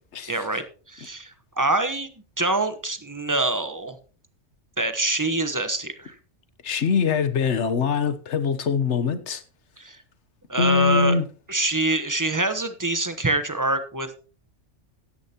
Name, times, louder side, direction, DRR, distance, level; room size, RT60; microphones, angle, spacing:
voice 1, 0.3-2.1 2.4-4.0 4.8-6.1 9.8-10.0 10.5-11.1 11.5-14.2, right 2 dB, 15° right, 0.9 m, -25 dB
voice 2, 6.6-9.4 10.6-11.3, left 5 dB, 70° left, 1.3 m, -23 dB
15.0 x 10.5 x 2.9 m
omnidirectional pair, 1.2 m